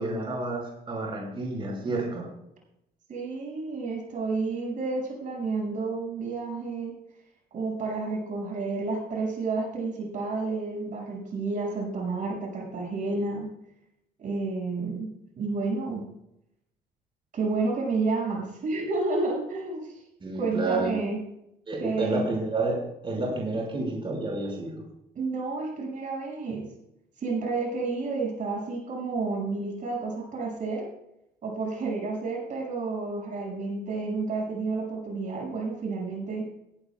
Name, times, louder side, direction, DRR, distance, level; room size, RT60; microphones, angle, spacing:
voice 1, 0.0-2.3 20.2-20.9 21.7-22.8 23.0-24.8, right 2 dB, 30° right, -1 dB, 5.4 m, -30 dB
voice 2, 3.1-7.0 7.5-13.5 14.2-15.1 15.4-16.0 17.3-20.0 20.3-21.2 21.8-22.2 25.1-26.7 27.2-30.9 31.4-36.4, right 3 dB, 55° right, 0 dB, 5.9 m, -30 dB
17.5 x 15.0 x 2.3 m, 0.81 s
cardioid pair, 110°, 16 cm